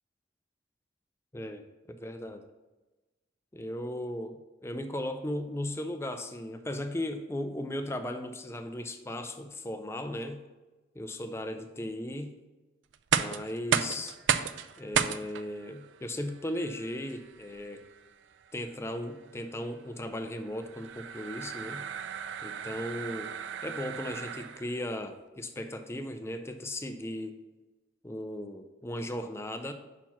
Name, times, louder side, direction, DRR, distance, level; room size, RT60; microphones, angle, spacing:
voice 1, 1.3-1.6 2.0-2.4 3.5-10.4 11.0-12.4 13.1-14.2 14.8-17.8 18.5-21.8 22.4-23.3 23.6-27.4 28.0-29.7, left 1 dB, 15° left, 8 dB, 0.4 m, -36 dB
sound 1, 12.9-24.8, right 8 dB, 75° right, 0.4 m, -34 dB
5.9 x 4.5 x 5.6 m, 1.1 s
head